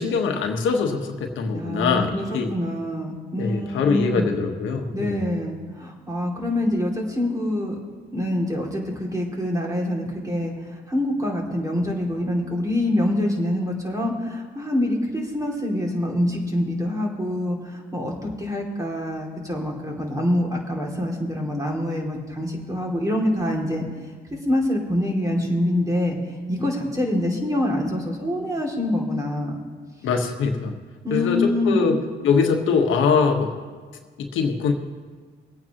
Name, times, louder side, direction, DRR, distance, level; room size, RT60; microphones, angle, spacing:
voice 1, 0.0-2.5 3.4-5.2 30.0-30.7 31.1-33.5 34.2-34.7, left 5 dB, 80° left, 3 dB, 1.3 m, -22 dB
voice 2, 1.5-4.3 4.9-7.8 8.1-10.5 10.9-23.8 24.4-26.2 26.5-29.6 31.0-31.8, left 1 dB, 15° right, -1 dB, 2.6 m, -25 dB
23.5 x 8.9 x 3.0 m, 1.5 s
cardioid pair, 90°, 20 cm